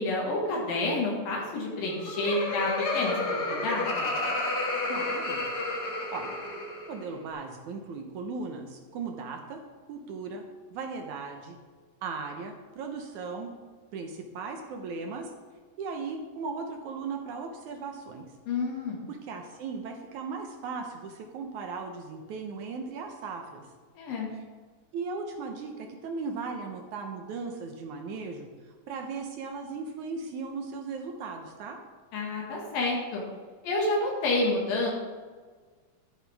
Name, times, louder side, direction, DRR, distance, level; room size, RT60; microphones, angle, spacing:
voice 1, 0.0-4.1 18.5-19.0 24.0-24.3 32.1-33.2 33.6-34.9, left 2 dB, 85° left, -2 dB, 3.5 m, -29 dB
Laughter, 1.8-7.0, left 2 dB, 50° left, 1.2 m, -31 dB
voice 2, 4.9-5.4 6.1-6.4 6.9-9.6 9.9-10.4 10.7-11.6 12.0-13.5 13.9-15.3 15.8-18.3 19.1-23.7 24.9-28.5 28.9-31.8, right 4 dB, 70° right, 3 dB, 2.1 m, -37 dB
12.0 x 11.0 x 3.5 m, 1.5 s
omnidirectional pair, 4.0 m